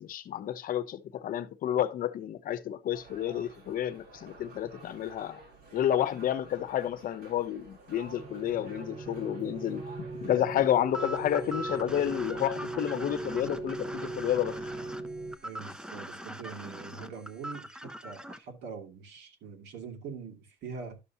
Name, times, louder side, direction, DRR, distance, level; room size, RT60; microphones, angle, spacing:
voice 1, 0.0-5.4 5.7-14.6, left 11 dB, 55° left, 0.9 m, -30 dB
sound 1, 2.9-15.0, right 2 dB, 70° right, 5.1 m, -52 dB
sound 2, 8.0-15.4, right 2 dB, 35° right, 0.8 m, -39 dB
sound 3, 10.9-18.4, right 1 dB, 5° right, 0.6 m, -41 dB
voice 2, 15.4-21.0, right 5 dB, 90° right, 2.4 m, -43 dB
12.0 x 6.9 x 2.8 m
cardioid pair, 150°, 17 cm